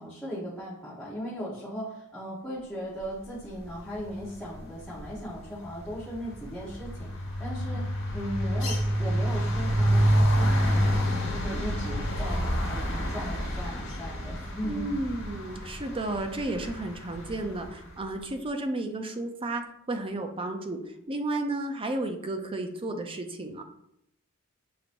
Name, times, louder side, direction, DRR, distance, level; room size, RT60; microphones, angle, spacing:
voice 1, 0.0-11.0 11.3-14.9, equal, 5° left, -11 dB, 1.0 m, -37 dB
sound 1, 3.9-4.3 4.6-17.7, equal, 60° left, 1.4 m, -28 dB
voice 2, 14.6-19.6 19.9-20.8 21.1-23.6, right 2 dB, 25° right, 5 dB, 0.5 m, -32 dB
6.7 x 2.9 x 2.6 m, 0.76 s
head